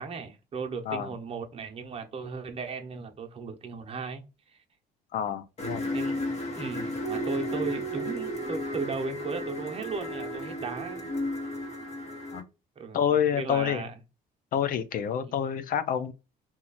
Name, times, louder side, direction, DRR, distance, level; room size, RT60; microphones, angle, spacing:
voice 1, 0.0-4.6 5.9-6.2 6.5-11.1 12.8-13.9 15.2-15.3, right 4 dB, 35° right, 0.8 m, -36 dB
voice 2, 0.9-1.2 5.1-5.9 12.3-12.5 12.9-13.8 14.5-16.1, left 8 dB, 55° left, 0.5 m, -28 dB
sound 1, 5.6-12.4, equal, 40° left, 1.0 m, -33 dB
2.9 x 2.3 x 4.0 m
cardioid pair, 110°, 17 cm